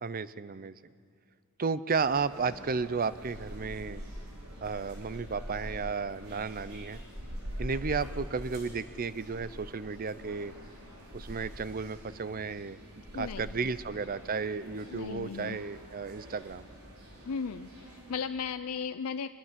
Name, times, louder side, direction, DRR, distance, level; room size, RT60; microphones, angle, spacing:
voice 1, 0.0-0.8 1.6-4.0 4.6-7.0 7.6-10.5 11.1-12.8 13.1-16.7, right 5 dB, 40° right, 16 dB, 0.6 m, -33 dB
sound 1, 1.9-18.2, equal, 80° right, 5.0 m, -45 dB
voice 2, 13.1-13.7 14.9-15.6 17.3-19.3, left 6 dB, 90° left, 10 dB, 0.5 m, -36 dB
24.5 x 21.0 x 7.5 m, 2.2 s
head